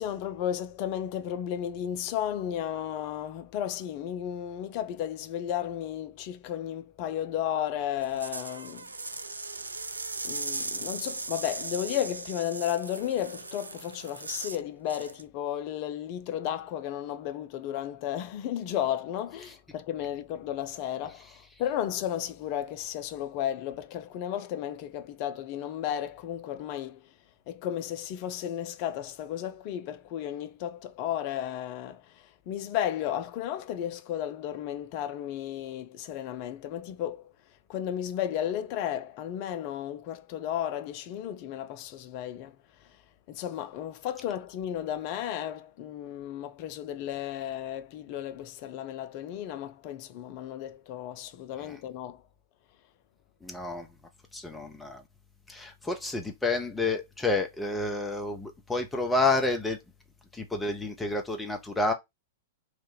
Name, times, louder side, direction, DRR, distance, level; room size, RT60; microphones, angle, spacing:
voice 1, 0.0-8.9 10.2-27.1 27.5-37.3 37.7-42.6 43.3-52.2, left 10 dB, 45° left, 0.6 m, -33 dB
sound 1, 8.0-14.6 14.9-15.2, right 3 dB, 85° right, 0.4 m, -38 dB
voice 2, 53.4-53.9 54.3-55.0 55.5-59.8 60.3-61.9, left 2 dB, 10° left, 1.0 m, -29 dB
3.3 x 2.5 x 4.0 m
figure-of-eight pair, 100°, 0 cm